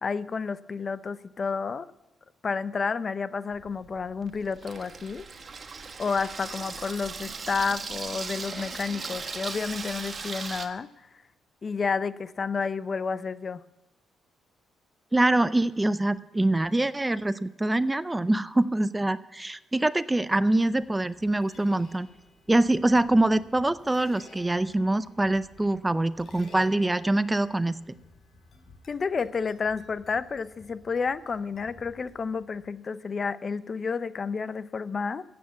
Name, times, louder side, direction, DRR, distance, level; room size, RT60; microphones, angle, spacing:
voice 1, 0.0-1.9 2.4-5.2 6.0-10.9 11.6-13.6 28.9-35.2, left 5 dB, 40° left, 15 dB, 0.6 m, -30 dB
Water tap faucet / Sink (filling or washing), 3.5-10.7, right 4 dB, 40° right, 1.5 m, -38 dB
voice 2, 15.1-22.1 22.5-27.8, right 2 dB, 15° right, 15 dB, 0.5 m, -24 dB
sound 1, 20.5-32.6, left 2 dB, 55° left, 4.6 m, -54 dB
14.5 x 8.7 x 8.3 m, 1.1 s
cardioid pair, 90°, 0 cm